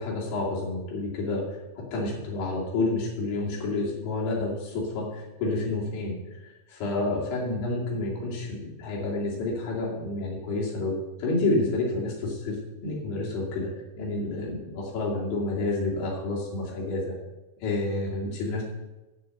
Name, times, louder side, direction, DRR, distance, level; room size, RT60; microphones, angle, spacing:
voice 1, 0.0-1.6 1.9-13.7 14.0-17.1 17.6-18.6, left 2 dB, 60° left, -3 dB, 4.3 m, -29 dB
8.9 x 6.7 x 7.7 m, 1.1 s
omnidirectional pair, 5.5 m